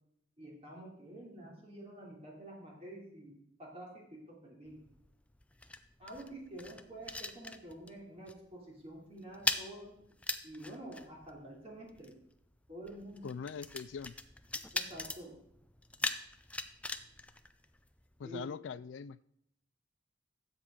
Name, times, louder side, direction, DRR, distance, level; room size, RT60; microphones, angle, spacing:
voice 1, 0.4-4.8 6.0-9.9 10.4-12.1 12.7-13.3 14.7-15.3 18.2-18.4, right 1 dB, 30° right, -3 dB, 3.0 m, -48 dB
sound 1, 4.7-8.0 8.3-8.5 8.8-18.2, left 2 dB, 5° left, 0.4 m, -41 dB
voice 2, 13.2-14.1 18.2-19.2, left 6 dB, 80° left, 16 dB, 0.3 m, -42 dB
14.5 x 7.9 x 3.8 m, 0.73 s
head